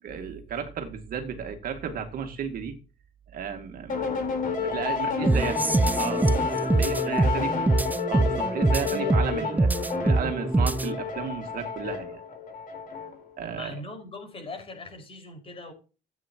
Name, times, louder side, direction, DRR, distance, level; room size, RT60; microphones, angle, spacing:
voice 1, 0.0-2.8 3.3-5.6 6.0-7.7 8.1-12.2 13.4-13.8, right 7 dB, 60° right, 5 dB, 2.2 m, -34 dB
sound 1, 3.9-13.3, left 5 dB, 55° left, 4.1 m, -30 dB
sound 2, 5.2-11.0, right 2 dB, 10° right, 0.5 m, -24 dB
voice 2, 6.7-7.3 7.6-7.8 13.5-15.7, left 2 dB, 35° left, 4 dB, 5.4 m, -42 dB
14.5 x 8.9 x 3.0 m, 0.34 s
cardioid pair, 110°, 17 cm